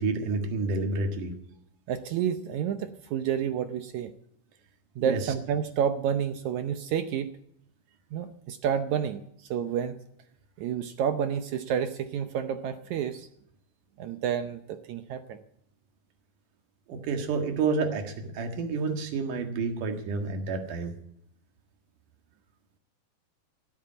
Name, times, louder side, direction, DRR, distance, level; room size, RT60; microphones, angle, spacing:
voice 1, 0.0-1.3 5.0-5.2 16.9-20.9, right 4 dB, 65° right, 5 dB, 3.1 m, -29 dB
voice 2, 1.9-4.1 4.9-7.3 8.1-10.0 10.6-13.3 14.0-15.4, right 8 dB, 80° right, 9 dB, 1.7 m, -30 dB
17.0 x 8.6 x 8.7 m, 0.73 s
omnidirectional pair, 4.3 m